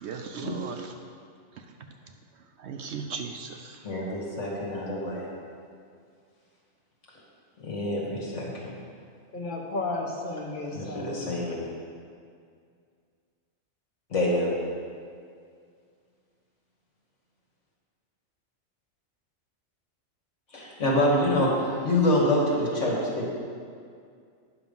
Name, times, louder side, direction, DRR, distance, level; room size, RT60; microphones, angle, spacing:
voice 1, 0.0-0.9 1.6-1.7 2.6-3.8, right 5 dB, 65° right, 4 dB, 0.8 m, -37 dB
voice 2, 3.8-5.3 7.6-8.7 10.7-11.6 14.1-14.5 20.5-23.3, left 1 dB, 65° left, -4 dB, 2.1 m, -26 dB
voice 3, 9.3-11.2, left 2 dB, 40° left, -1 dB, 1.2 m, -33 dB
9.6 x 5.8 x 5.4 m, 2.2 s
omnidirectional pair, 1.4 m